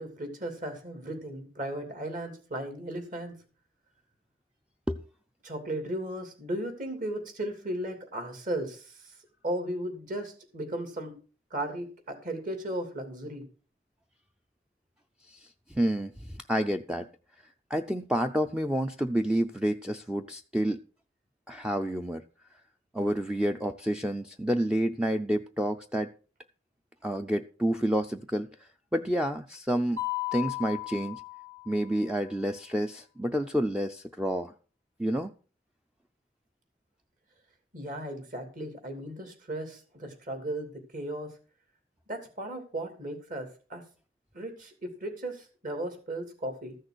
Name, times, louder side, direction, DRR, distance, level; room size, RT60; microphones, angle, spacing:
voice 1, 0.0-3.4 5.4-9.2 9.4-11.1 11.5-13.4 37.7-41.3 42.1-43.8 44.3-46.8, right 1 dB, 50° right, 5 dB, 2.9 m, -36 dB
voice 2, 15.3-17.1 17.7-20.8 21.5-22.2 22.9-26.1 27.0-30.0 30.3-31.2 31.7-34.5 35.0-35.3, equal, 5° right, 6 dB, 0.4 m, -29 dB
Mallet percussion, 30.0-32.0, left 19 dB, 80° right, 3.5 m, -35 dB
14.0 x 6.6 x 6.1 m, 0.37 s
head